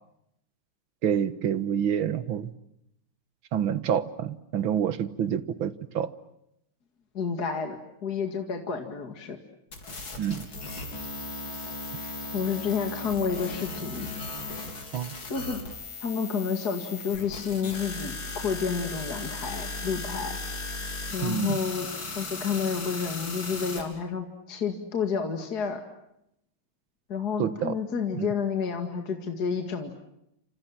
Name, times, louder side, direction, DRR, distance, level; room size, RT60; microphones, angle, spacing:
voice 1, 1.0-2.5 3.5-6.1 10.2-10.4 14.9-15.1 21.2-21.6 27.4-27.8 28.1-28.3, right 9 dB, 75° right, 14 dB, 2.1 m, -27 dB
voice 2, 7.1-9.4 12.3-14.1 15.3-15.6 16.0-20.4 21.1-21.9 22.2-25.8 27.1-29.9, left 6 dB, 50° left, 5 dB, 2.7 m, -30 dB
sound 1, 9.7-23.8, left 3 dB, 65° left, 4.8 m, -37 dB
29.5 x 26.5 x 7.5 m, 0.79 s
omnidirectional pair, 2.3 m